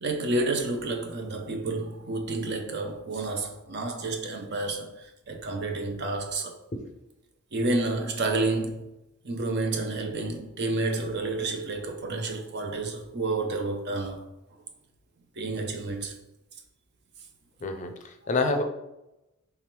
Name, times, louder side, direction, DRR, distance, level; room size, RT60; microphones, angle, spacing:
voice 1, 0.0-6.6 7.5-8.8 9.2-14.2 15.4-16.2 18.2-18.3, right 2 dB, 50° right, 0.7 m, -30 dB
voice 2, 17.6-18.6, left 3 dB, 35° left, 0.5 m, -28 dB
3.4 x 3.3 x 4.6 m
head